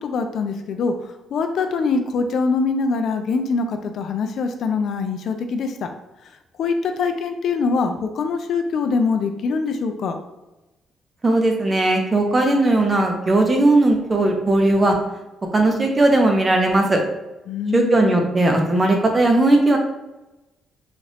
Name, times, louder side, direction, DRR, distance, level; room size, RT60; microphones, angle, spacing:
voice 1, 0.0-5.9 6.6-10.2 17.5-18.2, left 4 dB, 65° left, 6 dB, 0.4 m, -23 dB
voice 2, 11.2-14.9 15.5-17.0 17.7-19.8, right 2 dB, 20° right, 2 dB, 0.7 m, -17 dB
4.0 x 2.4 x 3.3 m, 1.0 s
cardioid pair, 140°, 0 cm